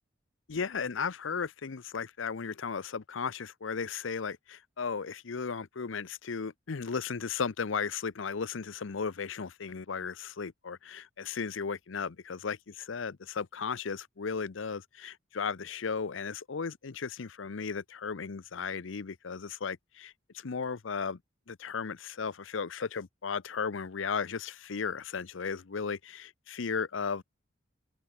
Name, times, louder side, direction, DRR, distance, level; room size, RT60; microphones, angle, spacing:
voice 1, 0.5-21.2 21.5-27.2, left 5 dB, 85° left, 0.7 m, -35 dB
open air
head